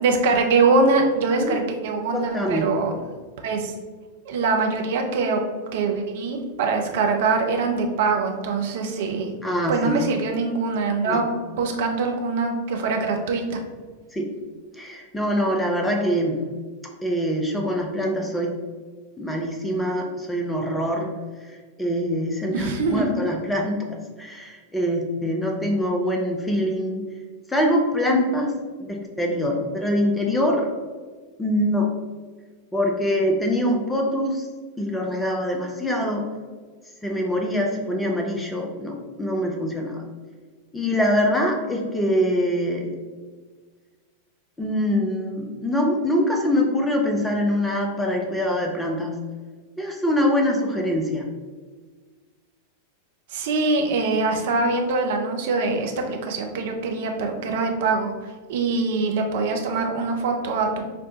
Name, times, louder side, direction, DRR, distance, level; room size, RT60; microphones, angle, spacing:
voice 1, 0.0-2.9 3.4-3.7 4.3-5.4 5.7-9.3 9.7-11.2 11.5-13.4 22.5-23.1 53.3-58.1 58.5-60.9, right 3 dB, 55° right, 3 dB, 0.5 m, -23 dB
voice 2, 2.1-2.7 9.4-10.0 11.0-11.2 14.1-14.3 14.7-16.4 17.0-18.5 19.2-21.1 21.5-27.0 27.5-28.5 28.9-30.7 31.4-31.9 32.7-34.5 34.8-36.3 37.0-40.0 40.7-43.0 44.6-49.1 49.8-51.2, equal, 10° left, 1 dB, 0.5 m, -24 dB
5.2 x 2.1 x 2.7 m, 1.4 s
figure-of-eight pair, 90°, 0 cm